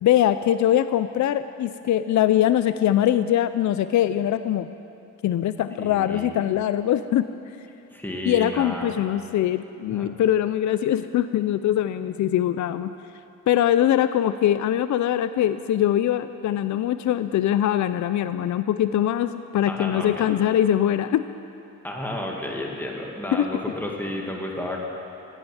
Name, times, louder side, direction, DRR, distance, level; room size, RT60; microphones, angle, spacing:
voice 1, 0.0-4.7 5.2-7.3 8.3-12.9 13.5-21.3 23.3-23.5, left 11 dB, 65° left, 12 dB, 0.5 m, -22 dB
voice 2, 5.8-6.4 7.9-8.9 9.9-10.2 19.7-20.3 21.8-24.9, left 1 dB, 5° left, -1 dB, 2.1 m, -32 dB
13.5 x 10.0 x 9.1 m, 2.8 s
cardioid pair, 100°, 31 cm